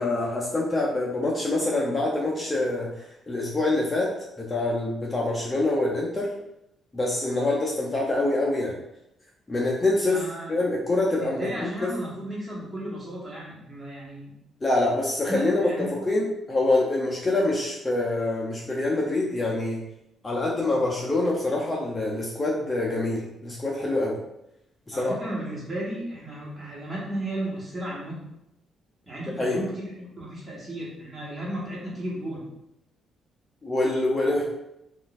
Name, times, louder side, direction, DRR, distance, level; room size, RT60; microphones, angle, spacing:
voice 1, 0.0-4.1 4.4-6.3 6.9-8.8 9.5-10.2 10.5-11.9 14.6-19.8 20.2-24.2 24.9-25.2 29.4-29.6 33.6-34.4, left 2 dB, 25° left, -3 dB, 0.6 m, -25 dB
voice 2, 10.1-10.5 11.2-14.3 15.3-15.9 24.9-28.3 29.1-32.5, right 1 dB, 25° right, -6 dB, 1.4 m, -34 dB
3.7 x 2.5 x 2.4 m, 0.84 s
cardioid pair, 90°, 0 cm